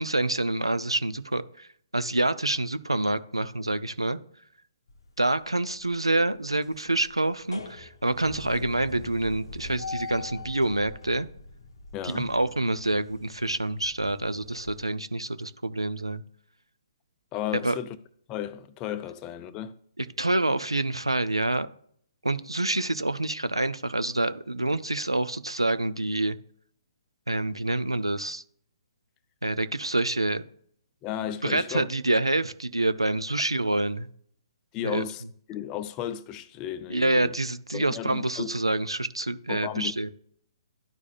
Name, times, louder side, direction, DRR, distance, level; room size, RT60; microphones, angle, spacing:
voice 1, 0.0-4.2 5.2-11.3 12.0-16.2 17.6-17.8 20.0-21.7 22.2-26.4 27.3-28.4 29.4-30.4 31.4-34.1 34.8-35.0 36.9-40.1, right 2 dB, 90° right, 0.4 m, -27 dB
sound 1, 4.9-5.4 5.8-6.0 6.4-14.8, left 3 dB, 70° left, 0.7 m, -42 dB
voice 2, 11.9-12.3 17.3-18.0 18.3-19.7 31.0-31.9 34.7-35.2 35.5-37.3 37.7-38.5 39.5-39.9, left 10 dB, 25° left, 0.5 m, -34 dB
12.0 x 4.8 x 2.3 m
figure-of-eight pair, 130°, 3 cm